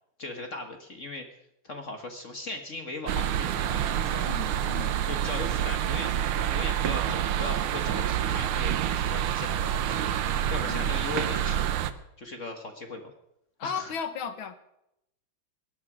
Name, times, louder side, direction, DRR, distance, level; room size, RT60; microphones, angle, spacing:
voice 1, 0.2-1.2 1.6-4.3 5.1-10.1 10.5-11.6 12.2-13.1 13.6-13.9, left 2 dB, 40° left, 5 dB, 1.5 m, -38 dB
sound 1, 3.1-11.9, right 10 dB, 75° right, 1.7 m, -27 dB
voice 2, 4.1-5.0 10.7-11.0 13.6-14.5, left 7 dB, 70° left, 9 dB, 2.1 m, -36 dB
19.5 x 11.5 x 6.1 m, 0.82 s
omnidirectional pair, 2.4 m